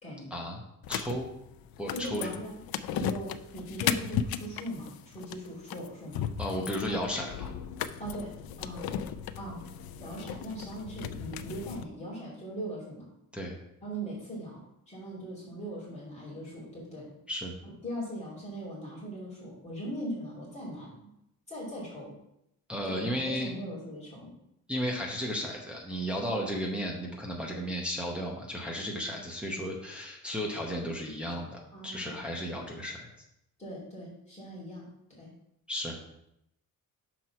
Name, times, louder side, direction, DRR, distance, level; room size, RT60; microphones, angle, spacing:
voice 1, 0.3-0.6 0.9-1.3 1.8-2.3 3.0-3.1 6.4-7.5 13.3-13.6 17.3-17.6 22.7-23.5 24.7-33.1 35.7-36.0, equal, 5° right, -2 dB, 0.8 m, -34 dB
sound 1, 0.8-11.8, left 9 dB, 80° left, 0.5 m, -36 dB
voice 2, 1.9-2.6 2.9-6.3 6.8-7.0 8.0-8.9 9.4-9.6 10.0-13.1 13.8-17.1 17.8-21.1 21.5-22.2 22.8-24.3 31.7-32.1 33.6-34.9 35.2-35.3, equal, 20° left, -7 dB, 2.7 m, -40 dB
6.0 x 4.6 x 5.6 m, 0.79 s
wide cardioid pair, 175°, 35 cm